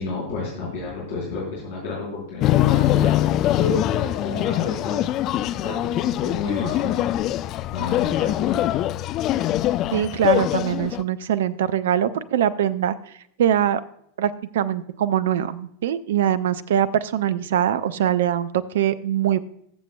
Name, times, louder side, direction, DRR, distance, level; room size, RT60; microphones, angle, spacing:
voice 1, 0.0-3.2 3.5-5.3 5.6-7.2 7.7-8.6, left 3 dB, 55° left, -4 dB, 3.6 m, -31 dB
sound 1, 2.4-11.0, left 13 dB, 35° left, 0.4 m, -22 dB
voice 2, 9.9-12.9 13.4-13.8 14.2-19.4, right 10 dB, 60° right, 17 dB, 0.5 m, -22 dB
20.0 x 7.5 x 2.3 m, 0.71 s
figure-of-eight pair, 90°, 0 cm